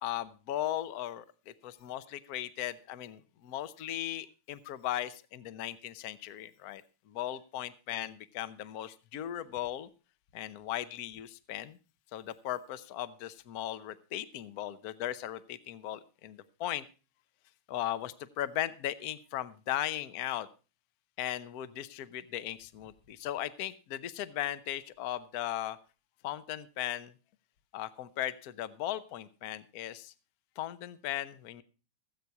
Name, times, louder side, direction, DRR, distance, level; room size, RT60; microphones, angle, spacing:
voice 1, 0.0-1.2 1.6-9.9 10.3-11.8 12.1-16.8 17.7-20.5 21.2-25.8 26.2-27.1 27.7-30.1 30.6-31.6, left 12 dB, 60° left, 14 dB, 1.1 m, -37 dB
16.5 x 8.4 x 4.6 m, 0.34 s
omnidirectional pair, 2.3 m